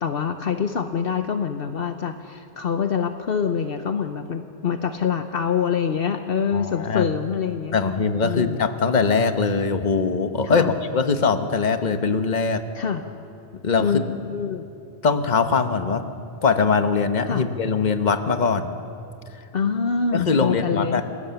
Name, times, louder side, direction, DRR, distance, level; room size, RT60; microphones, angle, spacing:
voice 1, 0.0-8.0 8.2-8.6 10.4-10.7 12.7-13.0 13.8-14.6 17.3-17.4 19.5-21.0, left 6 dB, 65° left, 7 dB, 1.0 m, -25 dB
voice 2, 6.5-7.1 7.7-12.6 13.6-13.8 15.0-16.0 16.4-18.7 20.1-21.0, left 5 dB, 45° left, 8 dB, 1.2 m, -21 dB
27.5 x 16.5 x 7.0 m, 2.6 s
omnidirectional pair, 1.1 m